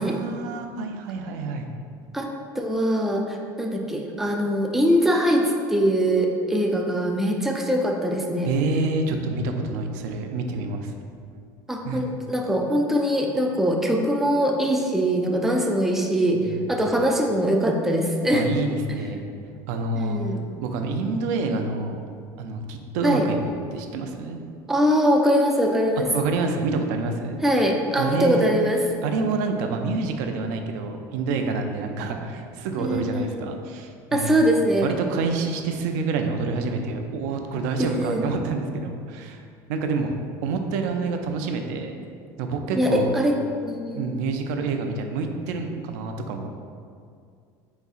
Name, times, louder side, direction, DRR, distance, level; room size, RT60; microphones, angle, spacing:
voice 1, 0.0-1.7 8.5-10.9 11.8-12.2 16.3-16.7 18.3-19.2 19.7-20.2 20.6-22.0 22.4-23.4 23.7-24.4 26.1-27.4 28.0-28.5 29.0-34.4 34.8-39.4 39.7-40.2 40.4-41.9 42.4-43.1 43.9-46.5, right 4 dB, 85° right, 5 dB, 0.4 m, -27 dB
voice 2, 2.1-8.5 11.7-18.5 20.0-20.4 23.0-23.3 24.7-26.1 27.4-28.8 32.8-33.5 34.1-34.9 37.8-38.2 42.7-43.4 43.6-44.0, equal, 5° right, 1 dB, 0.3 m, -22 dB
4.5 x 4.0 x 2.4 m, 2.3 s
cardioid pair, 140°, 9 cm